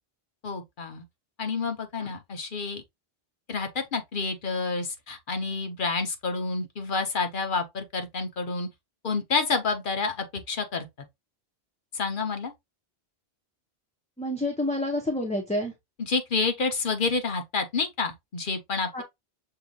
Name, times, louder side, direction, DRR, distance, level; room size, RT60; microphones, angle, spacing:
voice 1, 0.4-1.0 1.4-2.8 3.5-8.7 9.0-10.9 11.9-12.5 16.0-18.9, left 4 dB, 55° left, 1.0 m, -29 dB
voice 2, 14.2-15.7 18.9-19.0, left 1 dB, 10° left, 0.7 m, -28 dB
6.7 x 2.8 x 2.3 m
omnidirectional pair, 1.1 m